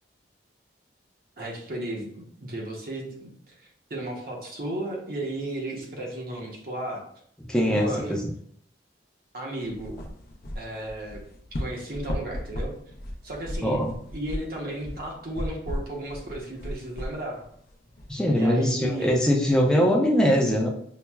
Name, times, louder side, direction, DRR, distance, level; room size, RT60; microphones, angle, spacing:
voice 1, 1.4-7.0 7.7-8.2 9.3-10.0 10.5-11.2 11.5-12.7 13.2-13.8 14.1-17.5 18.3-19.1, right 1 dB, 50° right, -1 dB, 0.7 m, -34 dB
voice 2, 7.5-7.9 13.6-13.9 18.1-20.7, equal, 5° left, -2 dB, 0.5 m, -21 dB
sound 1, 9.6-18.1, left 1 dB, 55° left, 0.5 m, -36 dB
5.6 x 2.0 x 2.3 m, 0.65 s
head